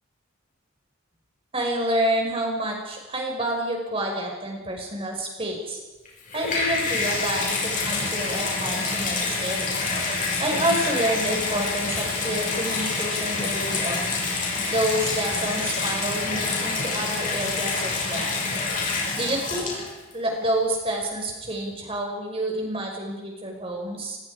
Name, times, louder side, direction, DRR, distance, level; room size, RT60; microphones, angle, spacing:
voice 1, 1.5-5.8 6.3-9.7 10.4-14.2 14.7-18.4 19.2-19.7 20.1-24.2, right 1 dB, 25° right, 1 dB, 5.4 m, -28 dB
Water tap faucet / Bathtub (filling or washing), 6.0-20.1 20.9-21.0, left 3 dB, 40° left, 6.3 m, -27 dB
25.5 x 21.0 x 5.0 m, 1.2 s
head